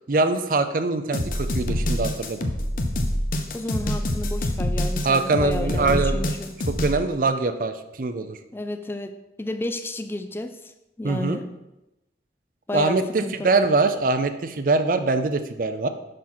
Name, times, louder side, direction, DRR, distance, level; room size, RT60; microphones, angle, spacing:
voice 1, 0.1-2.5 5.0-6.3 6.7-8.4 11.0-11.4 12.7-15.9, right 3 dB, 50° right, 9 dB, 0.5 m, -23 dB
sound 1, 1.1-7.0, left 1 dB, 50° left, 0.7 m, -26 dB
voice 2, 3.5-6.5 8.5-11.5 12.7-13.5, left 1 dB, 15° left, 8 dB, 0.4 m, -32 dB
6.2 x 5.6 x 4.3 m, 0.96 s
head